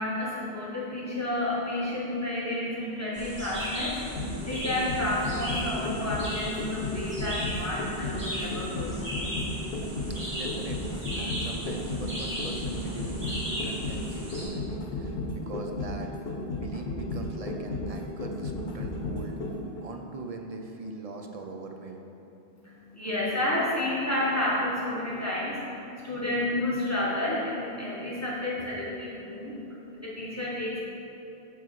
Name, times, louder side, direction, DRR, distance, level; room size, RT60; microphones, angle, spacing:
voice 1, 0.0-8.9 22.6-30.8, left 1 dB, 15° left, -8 dB, 1.3 m, -31 dB
sound 1, 3.1-14.5, equal, 70° right, 2.1 m, -37 dB
sound 2, 3.9-19.8 20.1-20.2, left 2 dB, 70° left, 1.0 m, -34 dB
voice 2, 10.3-16.1 16.6-22.1, right 3 dB, 45° right, 3 dB, 0.5 m, -41 dB
7.5 x 3.7 x 5.9 m, 2.9 s
omnidirectional pair, 1.1 m